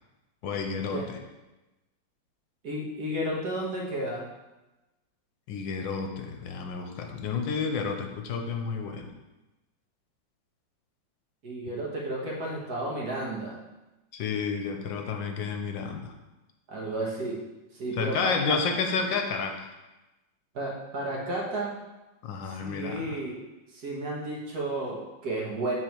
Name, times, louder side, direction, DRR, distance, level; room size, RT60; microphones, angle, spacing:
voice 1, 0.4-1.2 5.5-9.1 14.1-16.1 18.0-19.7 22.2-23.2, left 5 dB, 80° left, 4 dB, 1.4 m, -31 dB
voice 2, 2.6-4.3 11.4-13.6 16.7-17.4 17.7-18.6 20.5-21.8 22.5-23.4 23.7-25.8, right 1 dB, 55° right, -3 dB, 1.7 m, -32 dB
6.9 x 4.2 x 4.5 m, 1.0 s
omnidirectional pair, 2.1 m